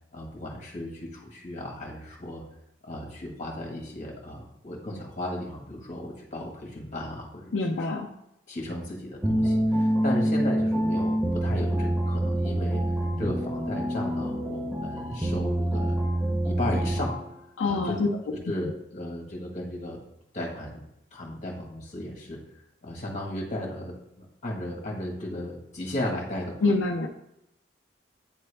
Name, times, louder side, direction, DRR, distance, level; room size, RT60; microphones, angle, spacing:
voice 1, 0.1-2.4 2.8-7.8 8.5-16.0 16.4-17.1 17.6-18.0 18.3-20.0 20.3-20.8 21.1-22.4 22.8-26.5, left 1 dB, 40° left, 0 dB, 1.5 m, -35 dB
voice 2, 7.5-8.1 17.6-18.1 26.6-27.1, left 3 dB, 80° left, 1 dB, 0.5 m, -25 dB
sound 1, 9.2-17.3, right 1 dB, 10° right, 0.6 m, -26 dB
8.8 x 3.4 x 3.3 m, 0.83 s
head